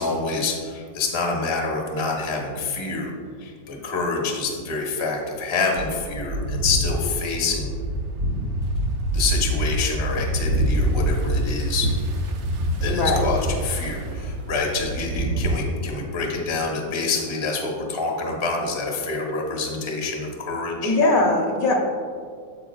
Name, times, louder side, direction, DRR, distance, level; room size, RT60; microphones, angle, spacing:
voice 1, 0.0-3.1 3.4-7.7 9.1-11.9 12.8-21.0, left 3 dB, 25° left, -1 dB, 0.7 m, -27 dB
sound 1, 5.8-15.5, right 1 dB, 60° right, 1.1 m, -25 dB
voice 2, 12.8-13.3 20.8-21.7, left 2 dB, 60° left, 0 dB, 1.2 m, -20 dB
9.8 x 7.4 x 2.3 m, 2.1 s
omnidirectional pair, 2.0 m